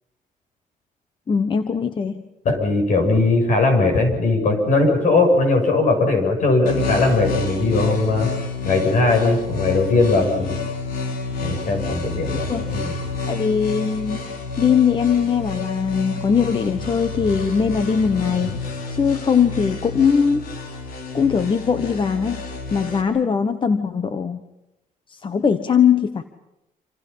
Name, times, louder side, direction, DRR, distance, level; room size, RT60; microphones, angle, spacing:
voice 1, 1.3-2.2 12.5-12.7 13.2-14.2 14.6-18.6 18.9-20.5 21.1-24.4 25.1-26.2, left 6 dB, 35° left, 9 dB, 1.2 m, -20 dB
voice 2, 2.4-8.3 8.6-10.6 11.4-13.0, left 3 dB, 65° left, 5 dB, 7.8 m, -19 dB
sound 1, 6.6-23.0, left 3 dB, 85° left, 4.0 m, -29 dB
28.0 x 27.5 x 5.7 m, 0.91 s
cardioid pair, 135°, 15 cm